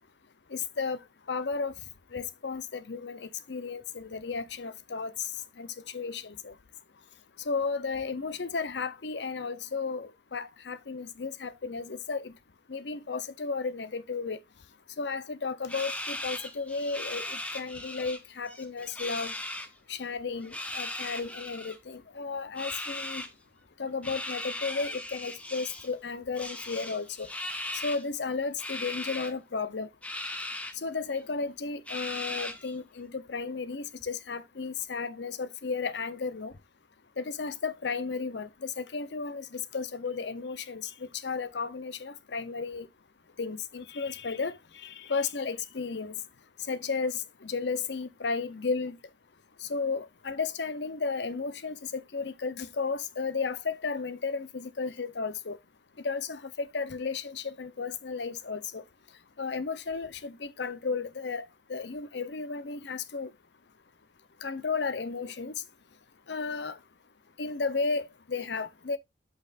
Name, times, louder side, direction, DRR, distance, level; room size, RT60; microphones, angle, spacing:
voice 1, 0.5-1.0 1.3-1.7 2.1-5.3 5.6-6.5 7.5-12.3 12.7-14.4 15.0-19.3 19.9-23.2 23.8-27.3 27.8-29.9 30.8-36.5 37.2-40.9 41.2-42.9 43.4-46.1 46.7-49.0 49.6-55.6 56.0-58.8 59.4-63.3 64.4-65.5 66.3-66.8 67.4-69.0, left 4 dB, 70° left, 0.7 m, -34 dB
sound 1, 15.7-18.2 18.5-19.7 20.4-21.8 22.6-23.3 24.0-25.9 26.4-28.0 28.6-29.3 30.0-30.7 31.2-31.3 31.9-32.7, left 1 dB, 10° left, 0.9 m, -38 dB
8.6 x 6.2 x 2.5 m
head